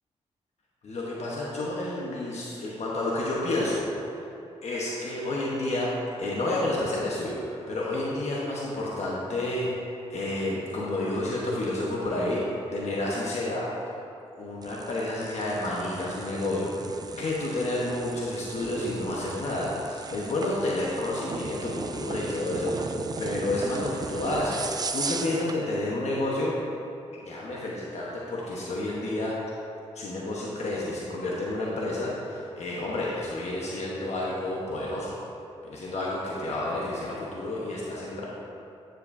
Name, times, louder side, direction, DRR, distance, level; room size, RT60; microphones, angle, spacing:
voice 1, 0.8-3.9 4.6-5.9 6.2-13.7 14.4-26.5 27.2-29.3 29.9-35.2 35.6-38.2, left 1 dB, 65° left, -5 dB, 1.2 m, -30 dB
sound 1, 14.6-25.6, right 4 dB, 35° right, 0.4 m, -37 dB
9.1 x 7.5 x 2.7 m, 2.7 s
cardioid pair, 65°, 12 cm